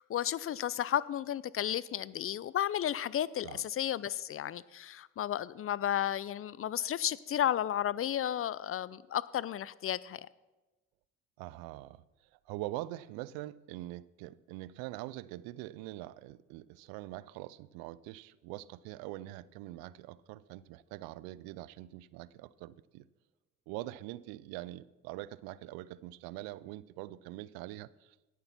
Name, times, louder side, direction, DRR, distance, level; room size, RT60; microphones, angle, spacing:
voice 1, 0.0-10.2, left 11 dB, 40° left, 0.5 m, -33 dB
voice 2, 11.4-12.0 12.3-23.1 23.7-28.2, right 16 dB, 70° right, 0.6 m, -44 dB
17.5 x 6.8 x 5.8 m
hypercardioid pair, 55°, 37 cm